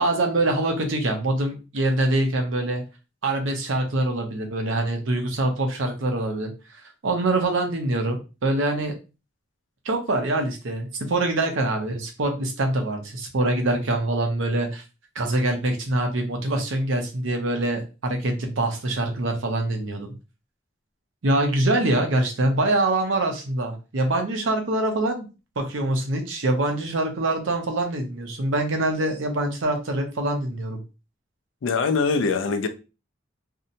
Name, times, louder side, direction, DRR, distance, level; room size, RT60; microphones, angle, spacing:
voice 1, 0.0-2.8 3.2-6.5 7.0-9.0 9.8-14.8 15.2-20.1 21.2-25.3 25.6-30.8, right 2 dB, 80° right, 0.7 m, -24 dB
voice 2, 31.6-32.7, left 4 dB, 70° left, 0.4 m, -22 dB
2.7 x 2.1 x 2.6 m
head